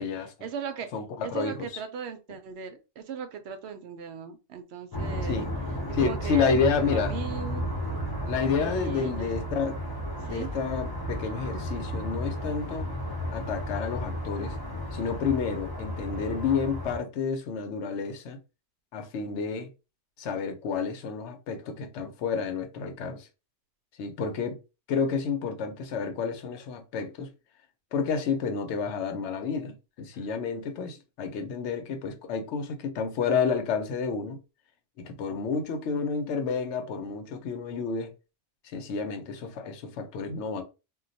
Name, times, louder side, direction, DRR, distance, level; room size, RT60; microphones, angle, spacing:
voice 1, 0.0-0.9 1.2-5.4 5.9-7.7 8.6-9.3 10.2-10.5, right 6 dB, 70° right, 0.8 m, -38 dB
voice 2, 0.9-1.7 5.2-5.5 5.9-7.1 8.3-9.7 10.3-12.9 13.3-14.6 14.9-18.4 18.9-19.7 20.2-23.3 24.0-24.6 24.9-27.3 27.9-34.4 35.0-38.1 38.7-40.6, left 5 dB, 80° left, 0.9 m, -30 dB
sound 1, 4.9-17.0, equal, 25° left, 0.6 m, -33 dB
2.2 x 2.2 x 3.9 m
omnidirectional pair, 1.2 m